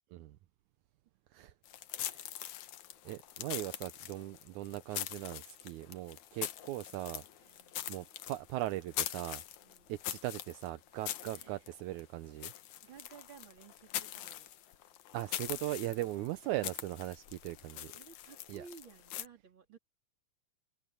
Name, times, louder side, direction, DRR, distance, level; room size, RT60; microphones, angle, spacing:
sound 1, 1.6-19.3, left 12 dB, 75° left, 2.4 m, -43 dB
voice 1, 2.0-2.3 3.1-7.6 7.9-9.4 9.9-12.5 15.1-17.9 18.5-18.7, right 15 dB, 80° right, 2.1 m, -39 dB
voice 2, 7.5-8.0 9.6-10.0 10.9-11.7 12.8-14.9 15.9-16.3 17.5-19.8, right 6 dB, 40° right, 3.9 m, -57 dB
omnidirectional pair, 3.5 m